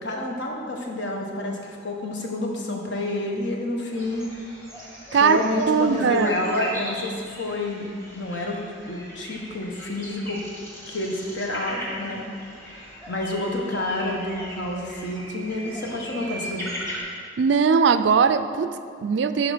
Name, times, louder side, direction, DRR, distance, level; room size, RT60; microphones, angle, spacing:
voice 1, 0.0-4.3 5.2-8.6 8.9-10.4 10.9-12.3 12.7-16.7, left 1 dB, 65° left, 1 dB, 1.2 m, -29 dB
sound 1, 3.9-17.0, equal, 15° left, 1.4 m, -38 dB
voice 2, 5.1-6.3 17.4-19.5, right 5 dB, 65° right, 12 dB, 0.4 m, -20 dB
10.5 x 5.1 x 5.0 m, 2.3 s
head